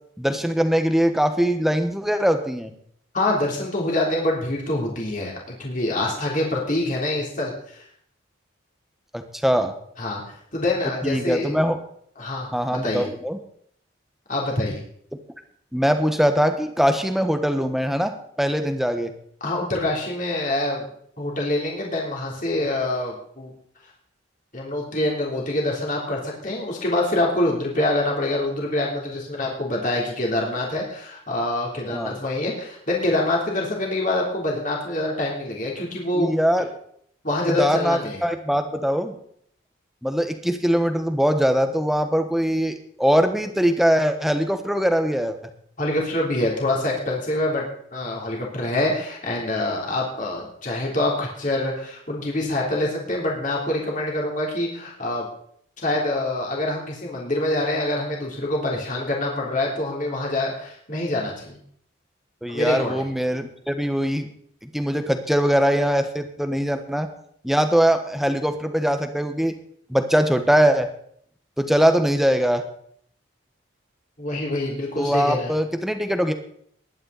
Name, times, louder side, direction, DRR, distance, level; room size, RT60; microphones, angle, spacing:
voice 1, 0.2-2.7 9.1-9.7 11.0-11.8 12.5-13.4 15.7-19.1 31.9-32.2 36.1-36.7 37.5-39.1 40.0-45.4 62.4-64.3 64.7-67.1 67.4-69.6 69.9-70.9 71.6-72.6 75.0-76.3, equal, ahead, 7 dB, 1.2 m, -22 dB
voice 2, 3.1-7.8 10.0-10.2 10.5-11.5 12.2-13.1 14.3-14.8 19.4-20.9 21.2-23.5 24.5-36.3 37.2-38.2 45.8-55.3 55.8-61.6 62.5-62.9 74.2-75.5, left 1 dB, 40° left, -2 dB, 3.4 m, -25 dB
20.0 x 11.0 x 4.1 m, 0.65 s
head